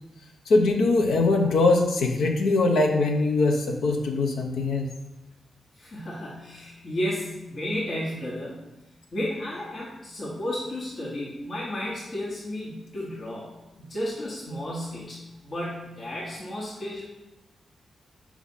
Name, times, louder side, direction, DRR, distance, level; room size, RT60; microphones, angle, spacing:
voice 1, 0.5-4.9, left 3 dB, 85° left, 2 dB, 0.8 m, -22 dB
voice 2, 5.8-8.7 9.1-13.5 13.8-17.0, left 1 dB, 65° left, -6 dB, 1.4 m, -33 dB
4.9 x 3.6 x 5.5 m, 0.98 s
supercardioid pair, 50°, 0 cm